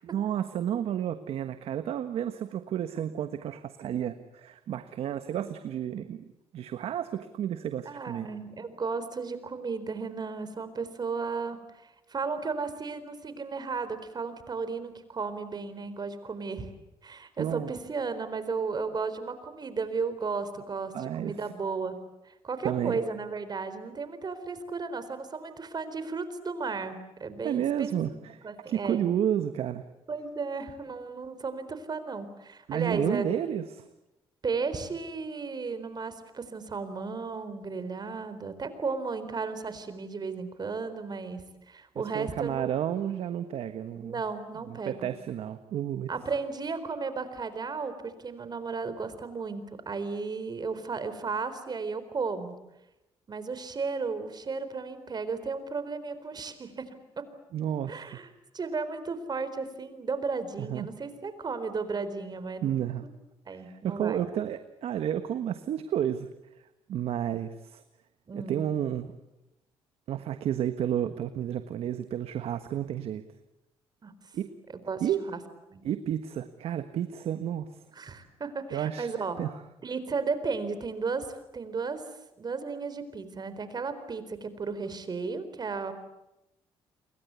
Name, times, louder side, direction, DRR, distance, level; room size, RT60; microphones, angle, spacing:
voice 1, 0.0-8.3 17.4-17.7 20.9-21.3 22.6-23.0 27.4-29.8 32.7-33.9 42.1-44.2 44.7-46.1 57.5-58.0 60.6-60.9 62.6-63.0 63.5-66.3 66.9-67.8 68.3-69.1 70.1-73.2 74.3-74.5 75.0-75.2 75.8-77.7 78.7-79.1 79.4-79.5, right 10 dB, 70° right, 10 dB, 1.4 m, -31 dB
voice 2, 7.8-16.7 17.0-22.0 22.3-29.0 30.1-33.3 34.4-42.9 44.0-45.1 46.1-52.6 53.3-56.9 57.2-57.3 57.9-62.8 63.5-64.3 68.3-68.6 74.0-74.1 74.7-75.4 75.7-75.9 78.0-79.4 79.8-82.0 82.4-85.9, right 4 dB, 40° right, 11 dB, 4.3 m, -34 dB
29.5 x 23.0 x 8.4 m, 0.91 s
cardioid pair, 75°, 10 cm